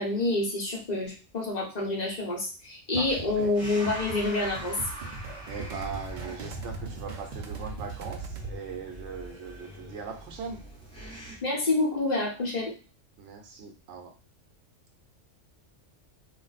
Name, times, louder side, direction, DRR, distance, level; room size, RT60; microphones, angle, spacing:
voice 1, 0.0-4.7 11.4-12.7, left 2 dB, 40° left, -2 dB, 0.8 m, -28 dB
sound 1, 2.9-8.5, right 3 dB, 60° right, 0.5 m, -40 dB
voice 2, 2.9-3.5 5.2-10.6 13.2-14.1, right 6 dB, 75° right, 2 dB, 0.9 m, -40 dB
sound 2, 3.5-11.4, equal, 5° left, 0.7 m, -43 dB
2.4 x 2.0 x 3.9 m, 0.34 s
omnidirectional pair, 1.3 m